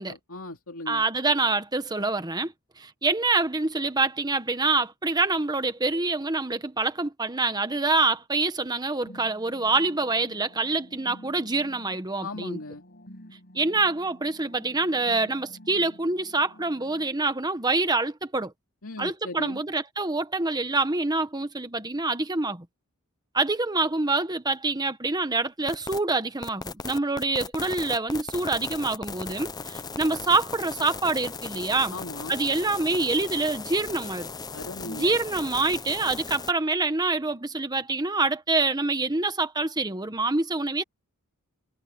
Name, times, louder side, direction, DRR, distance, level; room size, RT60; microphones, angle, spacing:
voice 1, 0.0-1.0 12.2-12.8 18.8-19.6 31.9-32.3 34.5-35.1, left 2 dB, 70° left, 2.7 m, -38 dB
voice 2, 0.9-12.6 13.5-18.5 19.0-22.6 23.3-31.9 32.3-34.3 34.9-40.8, right 3 dB, 20° right, 1.3 m, -26 dB
sound 1, 9.1-17.0, equal, 50° left, 7.2 m, -50 dB
sound 2, 25.7-26.0 26.4-36.5, left 4 dB, 20° left, 0.6 m, -37 dB
head